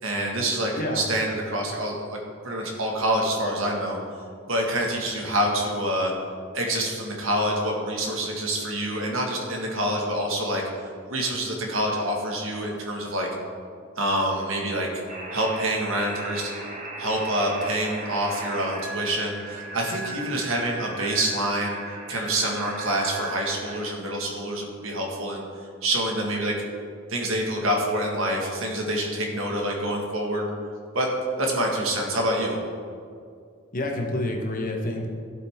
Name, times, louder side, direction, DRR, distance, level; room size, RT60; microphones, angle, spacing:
voice 1, 0.0-2.2 2.4-4.0 4.5-6.1 6.5-10.6 11.1-13.3 14.0-14.9 15.3-16.5 17.0-21.8 22.1-25.4 25.8-26.5 27.1-30.5 30.9-31.1 31.4-32.6, right 1 dB, 70° right, 0 dB, 1.9 m, -26 dB
sound 1, 15.1-23.9, right 2 dB, 35° right, 1.2 m, -37 dB
voice 2, 33.7-35.1, left 1 dB, 40° left, 1 dB, 1.2 m, -28 dB
14.5 x 7.8 x 3.7 m, 2.3 s
head